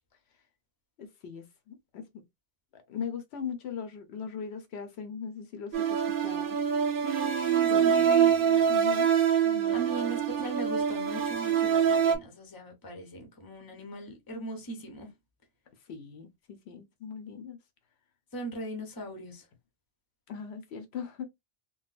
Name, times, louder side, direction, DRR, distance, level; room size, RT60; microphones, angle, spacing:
voice 1, 1.0-2.1 2.7-6.6 7.7-8.3 8.7-9.1 9.4-9.8 15.9-17.6 20.3-21.2, left 6 dB, 75° left, 0.9 m, -40 dB
sound 1, 5.7-12.2, right 8 dB, 60° right, 0.7 m, -25 dB
voice 2, 7.0-8.8 9.7-15.1 18.3-19.4, right 3 dB, 25° left, 0.7 m, -38 dB
3.8 x 2.1 x 2.4 m
omnidirectional pair, 1.1 m